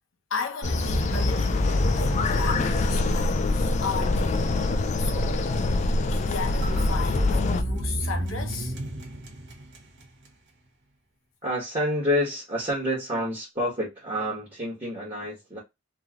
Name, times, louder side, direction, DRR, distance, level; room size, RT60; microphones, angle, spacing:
voice 1, 0.3-4.5 5.0-8.7, left 5 dB, 65° left, 0.8 m, -35 dB
sound 1, 0.6-7.6, left 2 dB, 35° left, 0.3 m, -25 dB
sound 2, 0.6-3.6 6.6-10.1, equal, 60° right, 0.8 m, -29 dB
voice 2, 11.4-15.6, equal, 30° right, 1.2 m, -28 dB
3.1 x 2.6 x 2.4 m
head